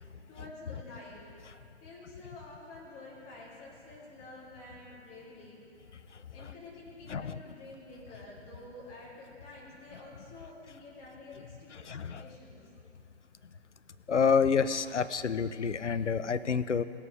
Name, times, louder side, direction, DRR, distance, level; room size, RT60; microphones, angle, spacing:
voice 1, 0.3-1.3 1.8-5.6 6.3-12.6, left 2 dB, 20° left, -4 dB, 2.4 m, -49 dB
voice 2, 11.9-12.2 14.1-16.8, left 6 dB, 85° left, 14 dB, 0.6 m, -28 dB
17.0 x 8.5 x 5.0 m, 2.7 s
figure-of-eight pair, 135°, 35 cm